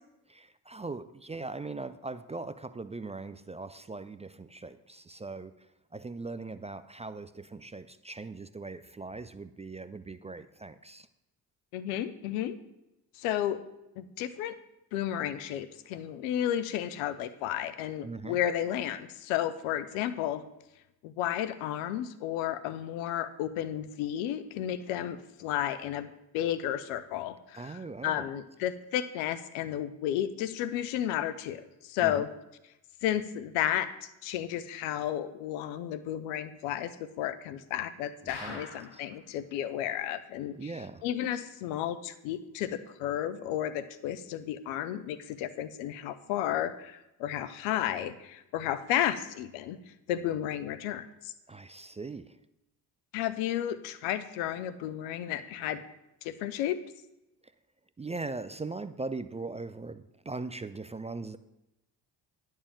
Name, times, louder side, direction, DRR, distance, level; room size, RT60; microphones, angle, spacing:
voice 1, 0.3-11.1 18.0-18.4 27.5-28.3 32.0-32.2 38.2-38.7 38.9-39.0 40.6-41.1 51.5-52.4 57.4-57.5 58.0-61.4, right 3 dB, 15° right, 12 dB, 0.4 m, -40 dB
voice 2, 11.7-12.6 13.1-13.6 14.0-14.6 14.9-20.4 21.0-26.1 26.3-32.3 33.0-40.7 41.0-49.8 50.1-51.3 53.1-55.8 56.2-56.8, left 11 dB, 80° left, 13 dB, 0.7 m, -32 dB
sound 1, 38.3-39.1 39.5-39.6 39.8-39.9 40.4-40.5, left 3 dB, 50° left, 2.3 m, -43 dB
10.0 x 4.7 x 7.4 m, 0.92 s
hypercardioid pair, 50°, 48 cm